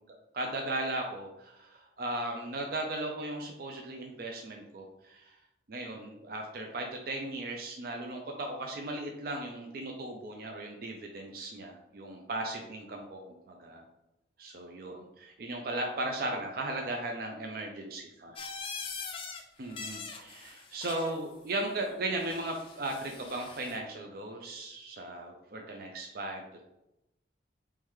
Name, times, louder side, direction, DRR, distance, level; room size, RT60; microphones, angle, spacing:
voice 1, 0.3-5.3 5.7-13.8 14.4-18.4 19.6-26.7, right 2 dB, 50° right, 1 dB, 0.4 m, -37 dB
sound 1, 18.4-19.4 19.7-21.2 22.2-23.8, left 5 dB, 30° left, 0.4 m, -42 dB
3.6 x 3.2 x 3.1 m, 0.88 s
head